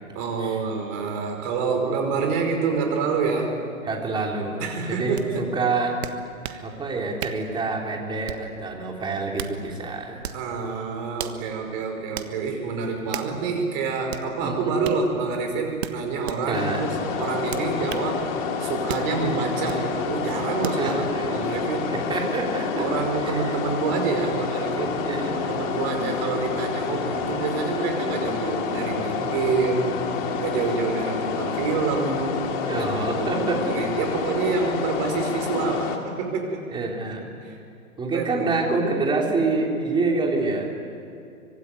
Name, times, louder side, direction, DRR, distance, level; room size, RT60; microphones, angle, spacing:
voice 1, 0.1-3.6 4.6-5.5 6.5-6.6 10.3-18.3 18.6-22.0 22.8-30.0 30.4-32.5 32.8-32.9 33.1-36.8 37.4-37.6 38.1-38.6, right 4 dB, 30° right, 3 dB, 5.3 m, -27 dB
voice 2, 3.8-6.0 6.6-10.2 13.3-13.4 14.4-14.7 16.5-16.9 20.8-21.4 21.9-22.8 23.2-23.5 25.0-25.4 32.6-33.7 36.7-37.3 38.0-40.7, right 3 dB, 10° right, 1 dB, 3.3 m, -27 dB
sound 1, 5.2-5.3 6.0-6.6 7.2-7.5 8.3-8.6 9.1-9.6 10.2-10.5 11.2-11.4 12.2-12.3 13.1-13.4 14.1-14.3 14.8-15.0 15.8-16.4 17.5-18.1 18.9-19.1 19.7-19.8 20.6-20.8, right 10 dB, 50° right, 1.5 m, -34 dB
sound 2, 16.5-36.0, left 6 dB, 35° left, 2.8 m, -28 dB
24.5 x 24.5 x 9.5 m, 2.5 s
hypercardioid pair, 130°, 42 cm